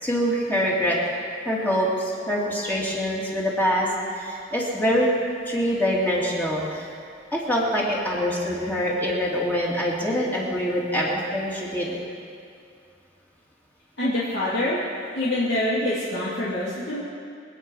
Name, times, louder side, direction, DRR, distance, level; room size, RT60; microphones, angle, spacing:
voice 1, 0.0-1.0 1.4-3.9 4.2-5.1 5.5-6.9 7.3-12.0, equal, 10° left, -5 dB, 2.6 m, -24 dB
voice 2, 14.0-14.8 15.2-17.0, left 1 dB, 65° left, -9 dB, 2.7 m, -25 dB
24.0 x 9.0 x 5.6 m, 2.4 s
head